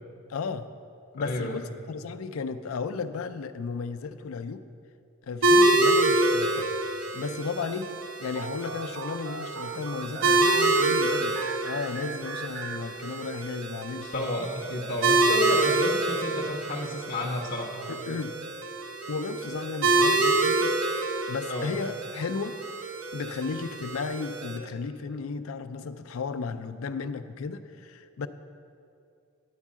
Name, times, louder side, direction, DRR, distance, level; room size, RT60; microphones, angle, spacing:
voice 1, 0.3-0.7 1.1-4.6 5.2-6.7 7.1-7.9 8.2-14.1 17.9-18.4 19.1-22.6 23.1-28.3, left 5 dB, 90° left, 11 dB, 0.4 m, -34 dB
voice 2, 1.2-1.6 14.1-17.7 21.5-21.7, left 1 dB, 45° left, 1 dB, 0.6 m, -31 dB
sound 1, 5.4-24.6, right 2 dB, 80° right, 0.9 m, -26 dB
sound 2, 8.3-13.5, right 5 dB, 65° right, 0.4 m, -40 dB
9.8 x 4.6 x 7.3 m, 2.4 s
head